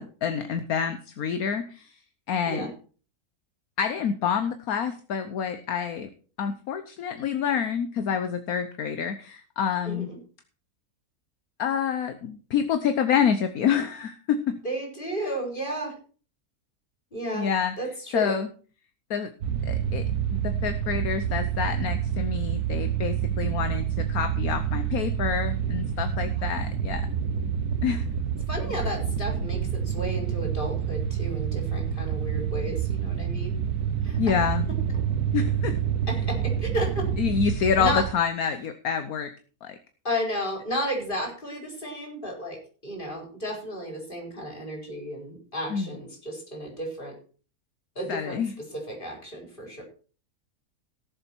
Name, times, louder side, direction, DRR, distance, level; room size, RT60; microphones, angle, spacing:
voice 1, 0.0-1.9 2.3-2.7 3.8-6.1 6.4-10.1 11.6-14.6 17.3-17.7 18.1-18.5 19.1-19.3 19.7-20.0 20.3-27.0 27.8-28.0 34.2-34.6 35.3-35.7 37.2-39.3 39.6-39.7 45.7-45.9 48.1-48.5, left 7 dB, 70° left, 9 dB, 1.4 m, -27 dB
voice 2, 9.9-10.2 14.6-15.9 17.1-17.5 17.8-18.4 28.5-33.5 34.0-34.2 36.1-37.1 37.8-38.0 40.0-42.6 42.8-47.1 47.9-49.8, equal, 30° left, 1 dB, 4.6 m, -33 dB
sound 1, 19.4-38.1, right 8 dB, 80° right, 1.6 m, -28 dB
17.5 x 7.6 x 4.5 m, 0.39 s
omnidirectional pair, 1.7 m